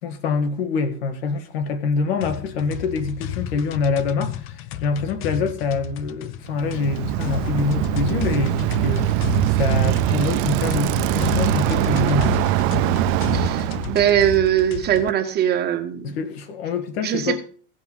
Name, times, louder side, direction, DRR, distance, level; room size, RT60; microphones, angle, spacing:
voice 1, 0.0-12.4 16.0-17.4, left 4 dB, 90° left, 2.0 m, -25 dB
sound 1, 2.2-15.1, left 10 dB, 45° left, 0.7 m, -31 dB
Bicycle, 6.5-14.0, right 18 dB, 50° right, 0.4 m, -22 dB
voice 2, 13.3-16.2 17.0-17.4, right 10 dB, 35° right, 1.5 m, -21 dB
17.0 x 5.9 x 5.6 m
supercardioid pair, 145°, 30 cm